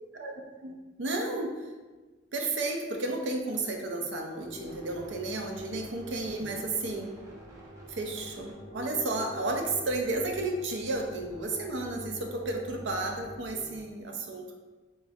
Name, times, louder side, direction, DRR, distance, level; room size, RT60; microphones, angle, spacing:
voice 1, 1.0-1.7 2.3-7.1 7.9-14.5, right 2 dB, 90° right, 2 dB, 0.6 m, -32 dB
sound 1, 4.4-13.8, equal, 20° right, 0.7 m, -45 dB
3.6 x 3.4 x 2.6 m, 1.3 s
head